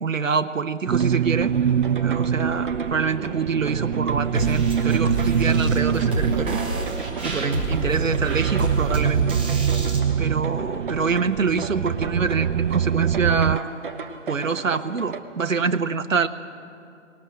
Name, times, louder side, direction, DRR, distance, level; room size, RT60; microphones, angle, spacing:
voice 1, 0.0-1.6 2.0-6.6 7.2-9.4 10.2-13.6 14.3-16.3, right 5 dB, 85° right, 9 dB, 1.0 m, -25 dB
sound 1, 0.8-15.2, right 4 dB, 40° right, 1.1 m, -37 dB
sound 2, 0.9-13.6, right 8 dB, 65° right, 0.5 m, -24 dB
sound 3, 4.4-10.0, right 1 dB, 10° right, 0.8 m, -28 dB
19.5 x 18.5 x 7.5 m, 2.6 s
figure-of-eight pair, 155°, 39 cm